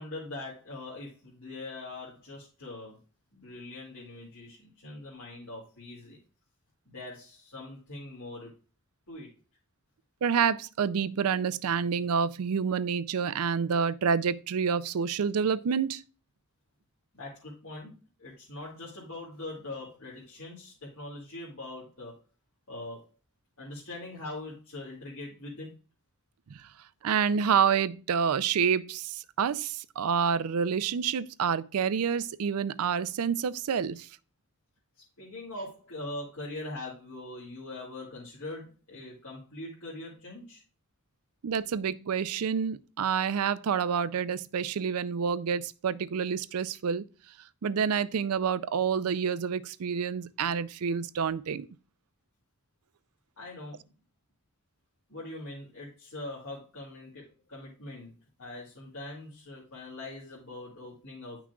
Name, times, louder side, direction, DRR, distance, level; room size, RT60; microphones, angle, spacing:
voice 1, 0.0-3.0 3.3-6.2 6.9-8.5 9.1-9.3 17.1-22.1 22.7-23.0 23.6-25.7 35.2-40.6 53.4-53.8 55.1-58.1 58.4-61.4, left 2 dB, 65° left, 2.3 m, -42 dB
voice 2, 10.2-16.0 26.5-26.7 27.0-34.1 41.4-47.0 47.6-51.7, right 6 dB, 80° right, 0.4 m, -28 dB
9.6 x 6.0 x 2.3 m
head